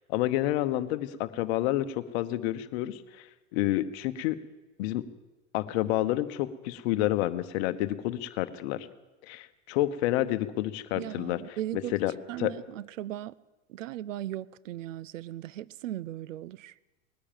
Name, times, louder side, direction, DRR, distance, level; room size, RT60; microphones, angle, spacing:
voice 1, 0.1-3.3 3.5-4.4 4.8-5.0 5.5-8.9 9.2-12.1 12.4-12.5, left 14 dB, 55° left, 1.1 m, -29 dB
voice 2, 11.0-12.0 12.3-13.3 13.7-16.7, right 13 dB, 75° right, 0.6 m, -37 dB
19.5 x 9.9 x 7.4 m
hypercardioid pair, 100°, 39 cm